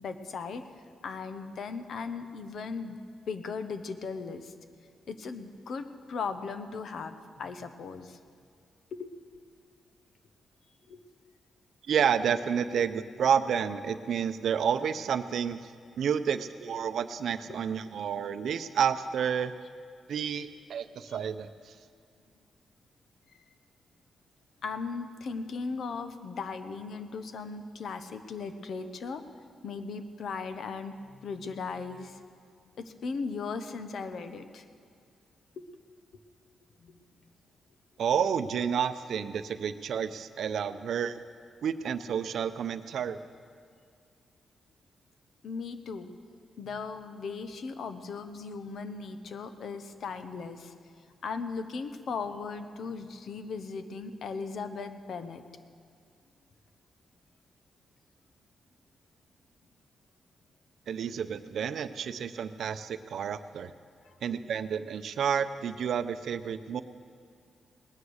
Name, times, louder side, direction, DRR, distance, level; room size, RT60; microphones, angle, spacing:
voice 1, 0.0-3.0 3.3-4.5 5.1-8.2 8.9-9.1 10.9-11.0 12.8-12.9 17.5-17.6 21.1-21.2 24.6-29.2 29.6-32.2 32.8-34.6 36.8-37.0 45.4-46.1 46.6-50.7 51.2-55.4 64.0-64.2, left 4 dB, 65° left, 9 dB, 0.9 m, -37 dB
voice 2, 11.9-15.7 16.0-19.5 20.1-21.7 38.0-41.2 41.6-43.2 60.9-63.7 64.2-66.8, right 7 dB, 70° right, 12 dB, 0.6 m, -30 dB
19.0 x 9.6 x 6.5 m, 2.2 s
cardioid pair, 110°, 0 cm